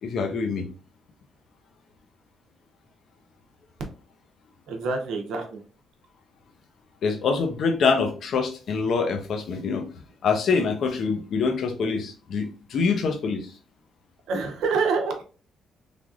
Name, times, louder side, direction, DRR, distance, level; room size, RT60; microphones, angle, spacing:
voice 1, 0.0-0.7 7.0-9.8 10.2-13.5, left 5 dB, 65° left, 5 dB, 0.6 m, -25 dB
voice 2, 4.7-5.6 14.3-15.2, right 4 dB, 85° right, 3 dB, 0.7 m, -26 dB
3.4 x 2.5 x 2.4 m, 0.38 s
cardioid pair, 90°, 0 cm